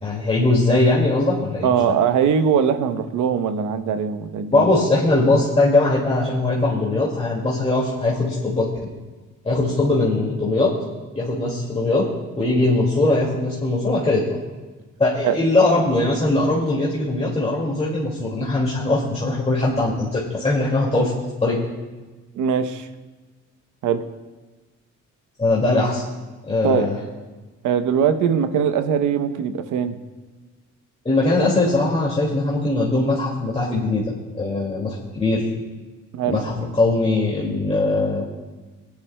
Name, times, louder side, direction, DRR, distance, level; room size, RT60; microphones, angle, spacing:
voice 1, 0.0-1.7 4.5-8.7 9.4-10.7 11.1-12.1 12.4-14.4 15.0-21.2 21.4-21.6 25.4-26.0 26.5-27.0 31.1-34.0 34.3-35.5 36.3-38.3, left 2 dB, 20° left, -5 dB, 2.2 m, -20 dB
voice 2, 1.6-4.7 15.2-15.4 22.3-22.9 23.8-24.0 26.6-26.9 27.6-30.0 36.1-36.4, right 7 dB, 80° right, 9 dB, 0.8 m, -21 dB
18.0 x 10.5 x 2.2 m, 1.3 s
cardioid pair, 90°, 30 cm